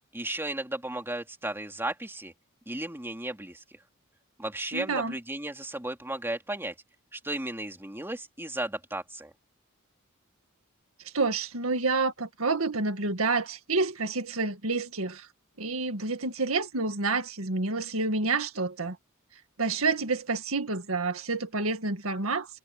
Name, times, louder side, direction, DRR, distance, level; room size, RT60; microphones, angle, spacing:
voice 1, 0.1-2.3 2.7-3.6 4.4-6.7 7.1-9.3, right 1 dB, 10° right, 2.8 m, -34 dB
voice 2, 4.7-5.1 11.1-15.3 15.6-19.0 19.6-22.6, right 3 dB, 80° right, 2.0 m, -28 dB
head